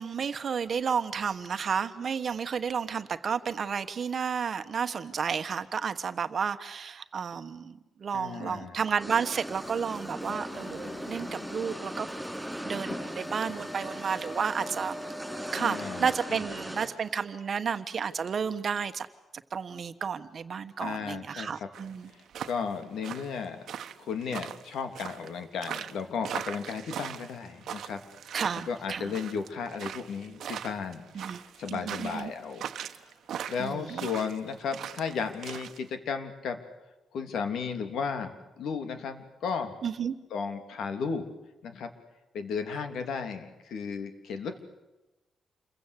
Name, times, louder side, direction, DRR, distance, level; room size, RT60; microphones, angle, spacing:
voice 1, 0.0-12.1 12.6-15.0 15.5-19.1 19.5-22.1 28.3-29.0 31.1-31.4 31.7-32.3 33.6-34.1 39.8-40.1, right 6 dB, 40° right, 10 dB, 1.3 m, -32 dB
voice 2, 8.1-8.8 15.6-16.4 20.8-21.7 22.1-23.7 24.0-28.1 28.7-33.1 33.5-36.6 37.1-39.7 40.3-41.3 41.6-41.9 42.3-44.6, left 5 dB, 80° left, 7 dB, 3.1 m, -34 dB
sound 1, 9.0-16.9, equal, ahead, 5.6 m, -39 dB
sound 2, 9.5-16.3, left 1 dB, 35° left, 1.8 m, -44 dB
sound 3, 21.7-35.8, right 9 dB, 70° right, 1.1 m, -40 dB
28.5 x 23.0 x 8.3 m, 1.0 s
wide cardioid pair, 160°, 0 cm